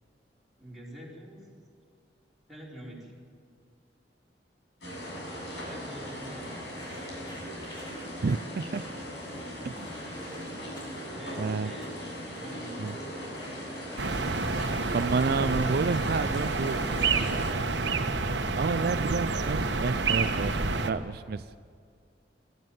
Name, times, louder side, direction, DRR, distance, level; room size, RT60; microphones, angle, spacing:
voice 1, 0.6-1.5 2.5-3.1 5.6-6.9 11.0-11.9 12.3-13.1 18.9-19.1, right 1 dB, ahead, -6 dB, 4.8 m, -46 dB
sound 1, 4.8-17.5, equal, 75° left, 7.0 m, -39 dB
sound 2, 6.7-17.5, left 1 dB, 25° left, 4.0 m, -51 dB
voice 2, 8.2-8.8 9.6-9.9 11.4-11.7 12.8-12.9 14.9-16.8 18.5-21.4, right 4 dB, 60° right, 12 dB, 0.4 m, -29 dB
sound 3, 14.0-20.9, right 3 dB, 85° right, 1.2 m, -28 dB
21.5 x 13.5 x 9.4 m, 2.2 s
head